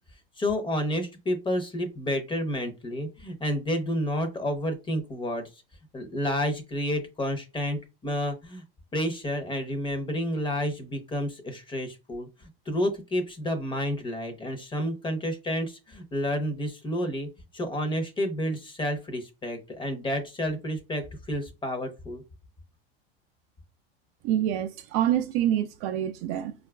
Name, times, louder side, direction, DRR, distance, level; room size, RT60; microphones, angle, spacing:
voice 1, 0.4-5.6 5.9-8.6 8.9-12.3 12.7-17.3 17.5-22.2, left 1 dB, 15° left, 0.7 m, -30 dB
voice 2, 24.2-26.5, right 11 dB, 50° right, 0.4 m, -26 dB
4.2 x 2.4 x 2.2 m
supercardioid pair, 110°, 30 cm